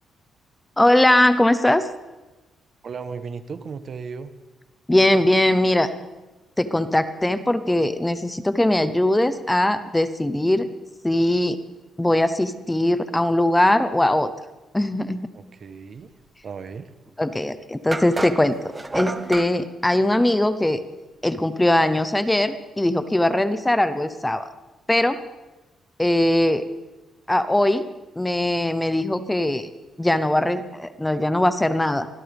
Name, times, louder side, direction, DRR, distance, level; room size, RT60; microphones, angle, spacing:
voice 1, 0.8-1.9 4.9-5.9 6.6-10.7 11.0-11.6 12.0-14.3 14.7-15.3 17.2-20.8 21.2-24.5 24.9-25.2 26.0-26.7 27.3-27.9 28.2-29.7 30.0-32.1, left 1 dB, 10° left, 11 dB, 0.8 m, -20 dB
voice 2, 2.8-4.3 15.3-16.1 16.4-16.9, right 5 dB, 50° right, 10 dB, 1.1 m, -35 dB
sound 1, 17.1-17.2 17.9-19.5, right 2 dB, 15° right, 1.0 m, -30 dB
24.0 x 16.5 x 3.6 m, 1.1 s
cardioid pair, 110°, 0 cm